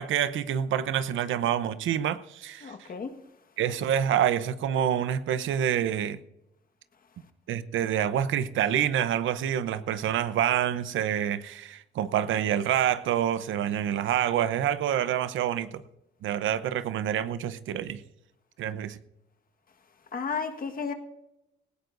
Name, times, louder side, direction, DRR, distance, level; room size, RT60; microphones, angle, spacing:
voice 1, 0.0-2.7 3.6-6.2 7.5-15.8 16.2-18.0 18.6-19.0, right 10 dB, 80° right, 0.8 m, -27 dB
voice 2, 2.6-3.1 20.1-20.9, left 5 dB, 45° left, 1.5 m, -33 dB
18.5 x 16.0 x 2.6 m
cardioid pair, 90°, 20 cm